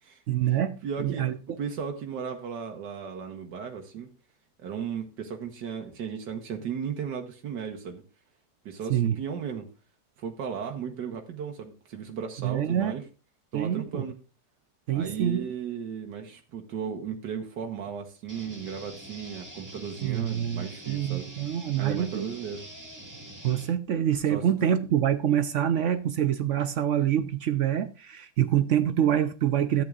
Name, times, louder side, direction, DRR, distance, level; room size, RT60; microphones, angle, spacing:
voice 1, 0.3-1.4 8.9-9.2 12.4-12.9 13.5-14.0 14.9-15.5 20.0-22.3 23.4-29.8, right 10 dB, 65° right, 0.8 m, -26 dB
voice 2, 0.8-4.1 4.6-8.0 8.7-9.7 10.2-13.0 13.5-14.2 14.9-22.7 24.3-24.4, right 7 dB, 90° right, 1.7 m, -36 dB
sound 1, 18.3-23.7, right 1 dB, 10° right, 1.8 m, -45 dB
13.5 x 9.3 x 2.4 m
omnidirectional pair, 1.8 m